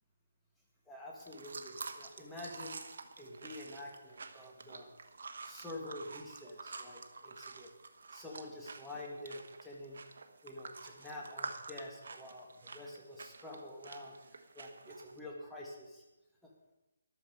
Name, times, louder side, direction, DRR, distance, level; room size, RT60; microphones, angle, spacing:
voice 1, 0.9-2.8 3.2-4.9 5.4-7.7 8.1-10.0 10.4-16.0 16.4-16.5, left 1 dB, ahead, -4 dB, 2.1 m, -47 dB
sound 1, 1.2-15.2, right 4 dB, 65° right, 1.3 m, -49 dB
14.0 x 11.5 x 5.0 m, 0.98 s
hypercardioid pair, 165°, 0 cm